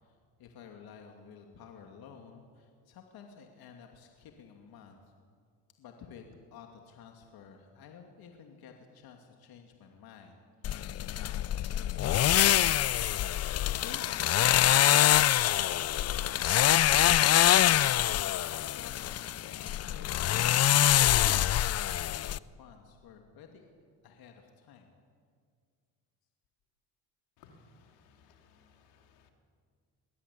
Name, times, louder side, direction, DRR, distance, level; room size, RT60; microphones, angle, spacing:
voice 1, 0.0-5.1 5.8-10.4 11.0-12.6 13.5-16.3 16.7-23.7 24.0-24.9, left 6 dB, 60° left, 3 dB, 2.6 m, -52 dB
sound 1, 10.6-22.4, left 12 dB, 40° left, 0.6 m, -25 dB
voice 2, 27.4-29.3, left 4 dB, 80° left, 4 dB, 3.1 m, -61 dB
22.5 x 17.0 x 8.5 m, 2.1 s
supercardioid pair, 85°, 41 cm